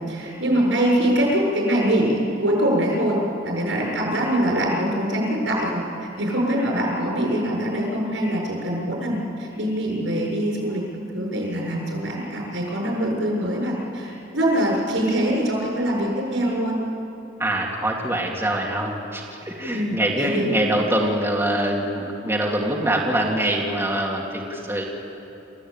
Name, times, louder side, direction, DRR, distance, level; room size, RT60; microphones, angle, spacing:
voice 1, 0.1-5.8 6.2-10.8 11.1-16.8 19.7-20.5, right 1 dB, 90° right, -2 dB, 7.0 m, -23 dB
voice 2, 17.4-24.8, right 1 dB, 15° right, -2 dB, 2.5 m, -24 dB
28.5 x 15.0 x 8.9 m, 2.9 s
head